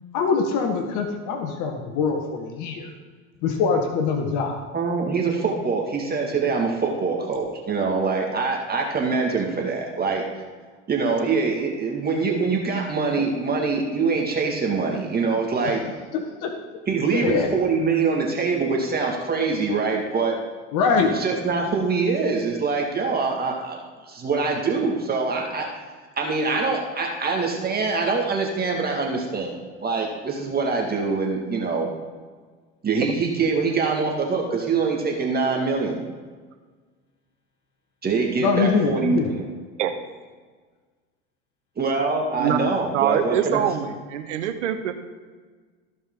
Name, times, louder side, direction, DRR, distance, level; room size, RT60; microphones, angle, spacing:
voice 1, 0.1-2.9 3.4-4.6 13.2-13.3 15.6-15.7 16.1-16.5 17.1-17.5 20.7-21.1 38.4-39.3, left 5 dB, 55° left, 4 dB, 1.5 m, -23 dB
voice 2, 4.7-10.3 10.9-15.8 16.9-20.4 21.1-23.8 24.1-25.7 26.2-29.5 29.8-31.9 32.8-36.0 38.0-39.4 41.8-43.6, right 4 dB, 25° right, 0 dB, 2.0 m, -24 dB
voice 3, 42.9-44.9, right 10 dB, 80° right, 7 dB, 1.1 m, -24 dB
14.5 x 5.2 x 3.9 m, 1.5 s
hypercardioid pair, 85°, 36 cm